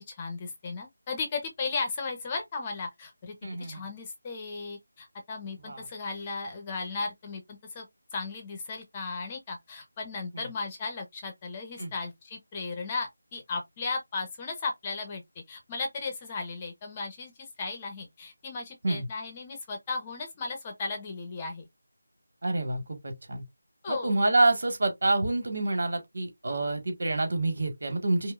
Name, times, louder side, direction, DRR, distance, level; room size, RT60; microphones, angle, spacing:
voice 1, 0.1-15.2 15.5-21.7 23.8-24.2, left 4 dB, 20° left, 1.0 m, -36 dB
voice 2, 3.4-3.8 5.6-5.8 10.3-10.5 11.8-11.9 18.8-19.1 22.4-23.4 23.9-28.3, right 2 dB, 60° right, 1.8 m, -27 dB
5.3 x 2.3 x 2.5 m
figure-of-eight pair, 165°, 0 cm